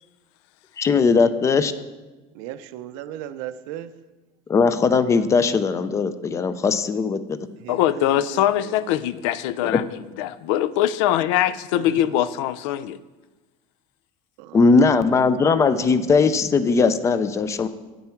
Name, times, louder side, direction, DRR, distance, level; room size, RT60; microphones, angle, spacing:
voice 1, 0.8-1.7 4.5-7.4 9.6-9.8 14.5-17.7, left 4 dB, 20° left, 13 dB, 0.4 m, -19 dB
voice 2, 2.3-3.9 7.6-9.0 9.3-9.7 11.7-11.9 14.4-15.0, right 11 dB, 85° right, 11 dB, 0.6 m, -37 dB
voice 3, 7.7-13.0, left 12 dB, 85° left, 16 dB, 0.4 m, -22 dB
9.1 x 8.8 x 4.5 m, 1.2 s
cardioid pair, 155°, 15 cm